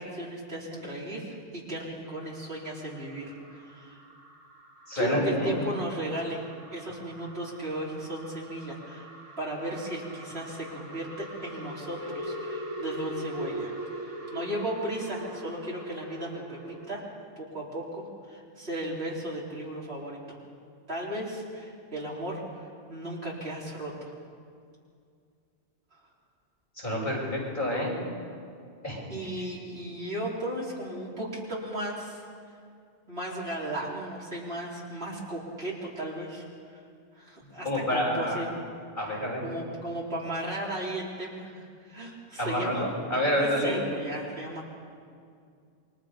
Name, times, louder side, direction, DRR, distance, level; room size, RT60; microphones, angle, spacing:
voice 1, 0.0-4.0 4.9-6.4 6.7-9.1 9.4-17.0 17.4-20.4 20.9-24.1 25.9-26.0 29.1-32.2 33.1-36.8 37.1-38.5 39.1-42.8 43.4-44.7, right 1 dB, 60° right, -6 dB, 4.4 m, -36 dB
sound 1, 2.0-17.2, right 1 dB, 30° right, 3.2 m, -42 dB
voice 2, 4.9-5.6 26.8-27.9 28.8-29.5 37.6-38.4 39.0-39.4 42.4-43.9, equal, 45° left, -3 dB, 6.6 m, -28 dB
28.0 x 23.5 x 5.3 m, 2.3 s
omnidirectional pair, 1.2 m